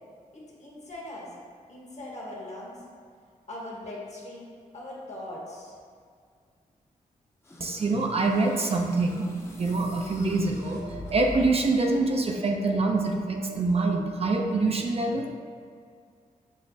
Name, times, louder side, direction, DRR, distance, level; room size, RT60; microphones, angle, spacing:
voice 1, 0.3-1.4 1.7-2.9 3.5-5.8, left 1 dB, 50° left, -4 dB, 1.2 m, -40 dB
sound 1, 7.4-11.8, left 2 dB, 15° left, 0.6 m, -43 dB
voice 2, 7.6-9.2 9.5-15.3, right 3 dB, 40° right, 2 dB, 0.4 m, -25 dB
6.0 x 2.0 x 2.7 m, 2.1 s
supercardioid pair, 45°, 15 cm